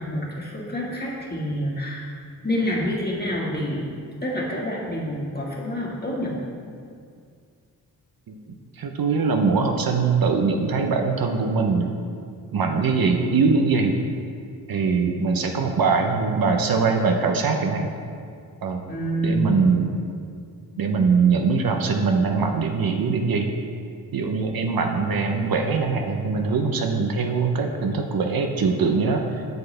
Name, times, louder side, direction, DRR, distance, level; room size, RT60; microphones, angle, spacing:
voice 1, 0.0-2.1 2.4-3.9 4.2-6.4 18.9-19.7, equal, 25° left, -3 dB, 1.9 m, -27 dB
voice 2, 8.8-11.9 12.5-13.9 14.7-17.9 18.6-18.8 19.2-19.9 20.8-23.5 24.1-29.2, right 4 dB, 65° right, 4 dB, 0.8 m, -22 dB
8.1 x 6.7 x 3.3 m, 2.2 s
cardioid pair, 60°, 39 cm